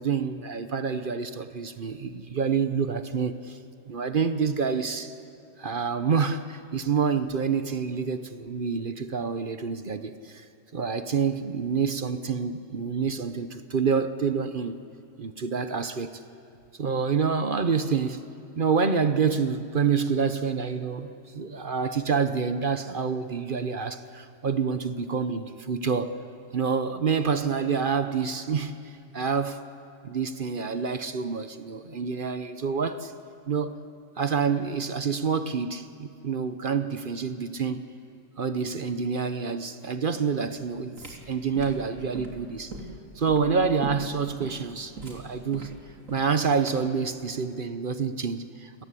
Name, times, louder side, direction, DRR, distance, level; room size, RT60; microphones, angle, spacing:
voice 1, 0.0-3.6 3.9-5.1 5.6-10.5 10.7-14.8 15.2-16.2 16.8-18.2 18.5-26.2 26.5-28.8 29.1-29.6 30.0-33.1 33.5-33.8 34.2-37.9 38.4-42.7 43.2-45.7 46.1-48.8, right 6 dB, 45° right, 10 dB, 0.9 m, -27 dB
sound 1, 40.7-47.0, right 2 dB, 80° right, 3.5 m, -41 dB
29.5 x 18.5 x 8.3 m, 2.5 s
omnidirectional pair, 1.3 m